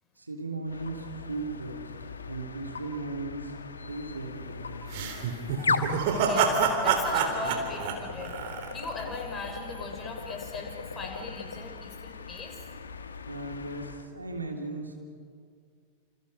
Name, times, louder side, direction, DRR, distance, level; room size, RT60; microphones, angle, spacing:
voice 1, 0.2-1.9 2.2-3.5 3.9-4.7 13.3-14.9, right 2 dB, 80° right, 2 dB, 3.2 m, -36 dB
sound 1, 0.7-14.1, left 5 dB, 70° left, 1.3 m, -38 dB
sound 2, 4.9-9.0, right 6 dB, 50° right, 3.4 m, -27 dB
voice 2, 6.2-8.4 8.7-12.6, left 3 dB, 20° left, 2 dB, 5.6 m, -39 dB
29.0 x 28.5 x 5.5 m, 2.2 s
figure-of-eight pair, 90°, 0 cm